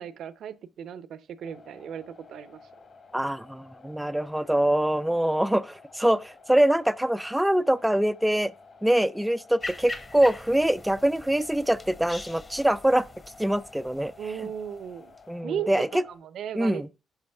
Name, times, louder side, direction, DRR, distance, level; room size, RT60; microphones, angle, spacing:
voice 1, 0.0-2.6 14.2-15.1 15.4-16.9, right 8 dB, 70° right, 0.6 m, -36 dB
sound 1, 1.4-16.2, left 4 dB, 50° left, 4.0 m, -52 dB
voice 2, 3.1-8.5 8.8-13.1 13.4-14.1 15.3-16.0 16.5-16.9, right 1 dB, 5° right, 0.4 m, -24 dB
sound 2, 9.6-15.2, left 2 dB, 25° left, 1.3 m, -42 dB
10.5 x 6.1 x 3.4 m
cardioid pair, 90°, 0 cm